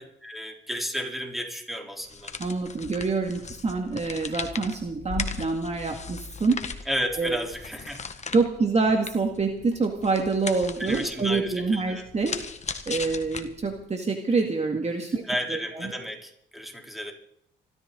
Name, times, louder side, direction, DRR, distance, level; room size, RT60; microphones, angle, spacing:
voice 1, 0.0-2.3 6.9-8.0 10.8-12.1 15.3-17.1, equal, ahead, 1 dB, 3.8 m, -32 dB
sound 1, 2.0-13.9, left 5 dB, 35° left, 1.6 m, -38 dB
voice 2, 2.4-6.6 7.2-7.4 8.3-12.4 12.9-15.2 15.5-15.8, right 4 dB, 35° right, 3 dB, 2.1 m, -26 dB
25.0 x 13.5 x 4.0 m, 0.72 s
cardioid pair, 90°, 20 cm